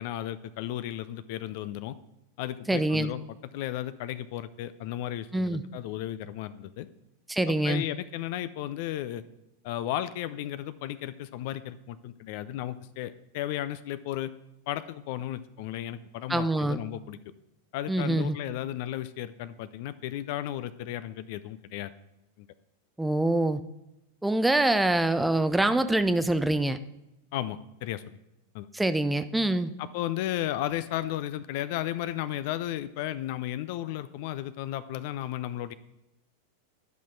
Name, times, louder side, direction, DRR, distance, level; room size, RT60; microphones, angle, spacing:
voice 1, 0.0-2.0 2.4-3.2 3.5-6.9 7.6-9.2 9.6-14.3 14.7-17.2 17.7-21.9 22.4-22.5 27.3-28.2 28.5-28.7 29.8-35.7, left 13 dB, 50° left, 15 dB, 0.4 m, -34 dB
voice 2, 2.7-3.1 5.3-5.6 7.3-7.8 16.3-16.8 17.9-18.4 23.0-23.6 24.2-26.8 28.7-29.7, right 1 dB, 5° right, 11 dB, 0.5 m, -25 dB
11.5 x 5.8 x 4.6 m, 0.90 s
figure-of-eight pair, 90°, 0 cm